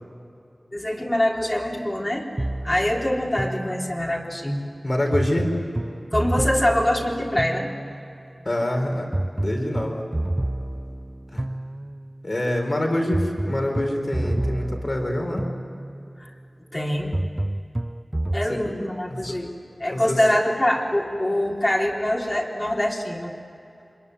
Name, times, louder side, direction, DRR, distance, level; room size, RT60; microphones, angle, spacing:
voice 1, 0.7-2.3 2.6-4.6 6.1-7.7 16.2-16.3 16.7-17.1 18.3-19.5 19.8-23.3, left 1 dB, 30° left, -3 dB, 3.7 m, -24 dB
sound 1, 2.4-4.3 5.1-8.2 9.1-12.2 13.1-16.2 17.1-18.5, right 1 dB, 25° right, 0.5 m, -29 dB
voice 2, 4.8-5.5 8.4-9.1 9.4-10.0 11.3-11.5 12.2-15.4 18.5-18.6 19.1-19.4 19.9-20.2, left 1 dB, 50° left, 2 dB, 5.0 m, -25 dB
25.5 x 22.5 x 9.8 m, 2.7 s
wide cardioid pair, 45°, 0 cm